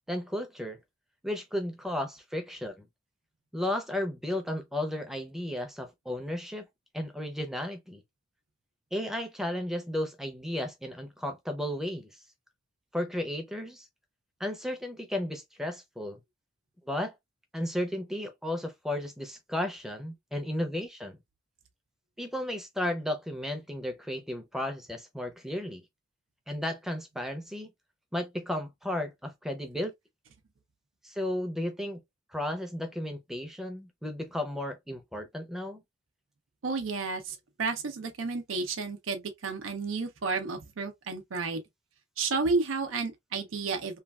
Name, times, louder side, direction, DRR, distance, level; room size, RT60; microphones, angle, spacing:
voice 1, 0.1-0.8 1.2-2.9 3.5-6.7 6.9-8.0 8.9-12.2 12.9-13.9 14.4-16.2 16.9-17.1 17.5-21.2 22.2-25.8 26.5-27.7 28.1-29.9 31.0-32.0 32.3-35.8, left 1 dB, ahead, 0.5 m, -34 dB
voice 2, 36.6-41.6 42.2-44.0, right 4 dB, 80° right, 0.6 m, -31 dB
3.1 x 2.3 x 2.3 m
head